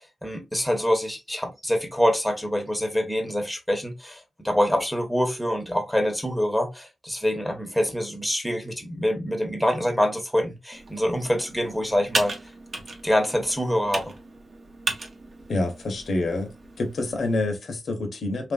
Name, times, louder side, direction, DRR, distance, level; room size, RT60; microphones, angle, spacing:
voice 1, 0.2-12.3 13.0-14.1, equal, ahead, 0.8 m, -25 dB
Computer keyboard, 10.7-17.5, right 3 dB, 55° right, 0.8 m, -35 dB
voice 2, 15.5-16.5 16.8-18.5, left 2 dB, 70° left, 0.8 m, -27 dB
2.9 x 2.5 x 2.3 m
wide cardioid pair, 95°, 0 cm